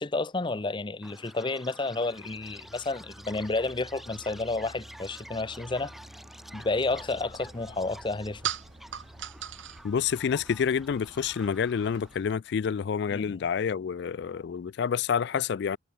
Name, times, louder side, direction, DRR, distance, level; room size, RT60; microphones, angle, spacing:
voice 1, 0.0-5.9 6.5-8.4 13.1-13.4, left 3 dB, 25° left, 0.6 m, -31 dB
Chirp tweet, 1.0-12.2, equal, ahead, 7.1 m, -49 dB
sound 1, 1.9-12.6, equal, 35° right, 3.2 m, -52 dB
sound 2, 6.9-12.4, right 9 dB, 75° right, 1.7 m, -41 dB
voice 2, 9.8-15.8, left 7 dB, 60° left, 0.3 m, -28 dB
head